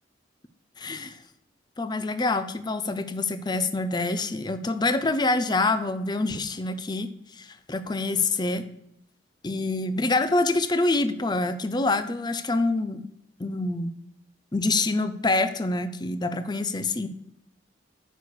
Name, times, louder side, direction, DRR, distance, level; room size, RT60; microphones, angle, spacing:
voice 1, 0.8-1.2 1.8-8.6 9.4-13.0 13.4-13.9 14.5-17.1, left 2 dB, 25° left, 11 dB, 0.5 m, -26 dB
9.3 x 3.4 x 6.2 m, 0.76 s
head